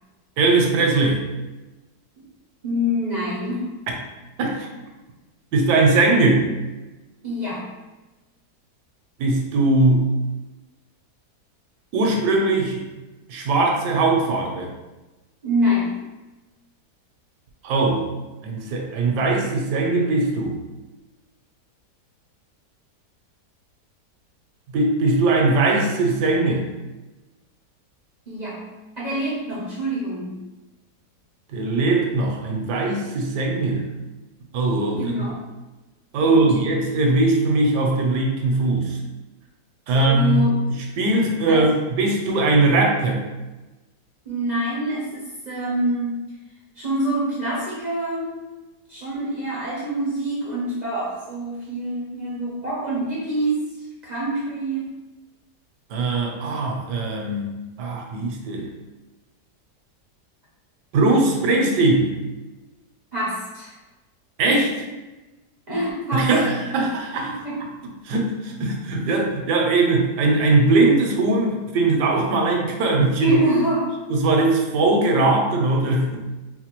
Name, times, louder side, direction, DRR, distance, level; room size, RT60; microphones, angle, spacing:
voice 1, 0.4-1.2 4.4-4.7 5.5-6.5 9.2-10.1 11.9-12.8 13.3-14.7 17.6-18.1 18.4-20.5 24.7-26.7 31.5-33.9 34.5-35.3 36.1-39.0 39.9-43.2 55.9-57.5 57.8-58.7 60.9-62.1 64.4-64.7 66.1-67.3 68.0-73.4 74.1-76.2, right 2 dB, 80° right, 1 dB, 1.2 m, -20 dB
voice 2, 2.6-3.7 7.2-7.7 15.4-16.0 28.3-28.7 29.0-30.4 35.0-35.4 36.2-36.4 39.9-40.5 41.5-41.7 44.3-46.2 46.8-48.4 48.9-53.7 54.0-54.9 63.1-63.7 64.4-64.6 65.7-66.5 67.2-67.6 73.2-73.9, equal, 55° right, -7 dB, 0.4 m, -26 dB
4.2 x 2.2 x 2.9 m, 1.1 s
omnidirectional pair, 1.8 m